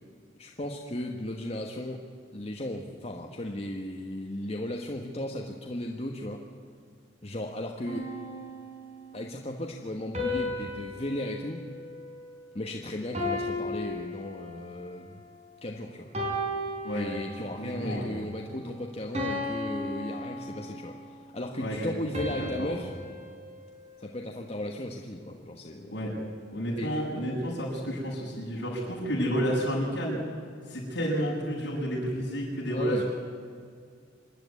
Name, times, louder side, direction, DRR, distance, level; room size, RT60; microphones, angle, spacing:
voice 1, 0.4-2.0 2.3-6.5 7.2-8.1 9.1-11.6 12.5-15.2 15.6-16.1 16.9-22.9 24.0-26.0 26.8-27.0 32.7-33.0, left 1 dB, 35° left, 1 dB, 1.2 m, -36 dB
sound 1, 7.9-9.2 10.1-12.7 13.1-14.9 15.4-15.7 16.1-17.7 18.2-18.4 19.1-21.0 22.1-24.5, left 1 dB, 35° right, 4.5 m, -36 dB
voice 2, 17.6-18.1 21.6-21.9 22.4-22.7 25.9-26.1 26.5-30.2 30.7-33.1, equal, 65° left, -4 dB, 7.0 m, -30 dB
26.0 x 10.5 x 9.5 m, 2.2 s
head